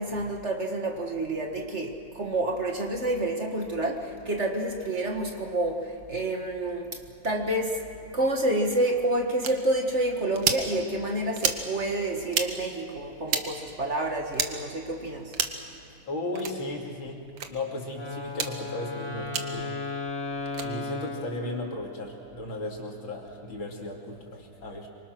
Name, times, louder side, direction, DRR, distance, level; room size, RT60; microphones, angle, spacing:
voice 1, 0.0-6.9 7.2-7.8 8.1-15.3, right 1 dB, 35° right, 2 dB, 2.0 m, -28 dB
sound 1, 9.4-9.5 10.4-10.6 11.4-11.6 12.3-12.5 13.3-13.5 14.3-14.5 15.3-15.6 16.4-16.5 17.4-17.5 18.3-18.5 19.3-19.5 20.5-20.7, right 7 dB, 70° right, 2.0 m, -28 dB
voice 2, 16.1-17.2 17.5-19.8 20.6-24.9, left 2 dB, 80° left, 0 dB, 3.7 m, -35 dB
Wind instrument woodwind instrument, 17.9-22.1, left 3 dB, 40° left, 3.0 m, -35 dB
26.0 x 24.5 x 6.2 m, 2.5 s
omnidirectional pair, 2.1 m